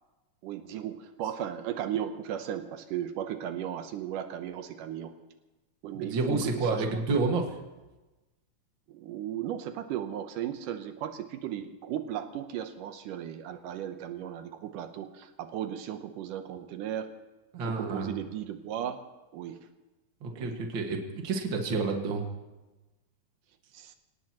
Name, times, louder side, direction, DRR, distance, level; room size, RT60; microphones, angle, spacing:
voice 1, 0.4-5.1 5.8-7.2 8.9-17.1 17.6-19.0 19.3-19.7 20.3-20.6 23.7-24.0, right 10 dB, 85° right, 7 dB, 2.5 m, -36 dB
voice 2, 5.9-7.5 17.5-18.2 20.2-22.2, right 3 dB, 45° right, 2 dB, 2.1 m, -29 dB
25.5 x 18.0 x 3.0 m, 1.1 s
omnidirectional pair, 3.7 m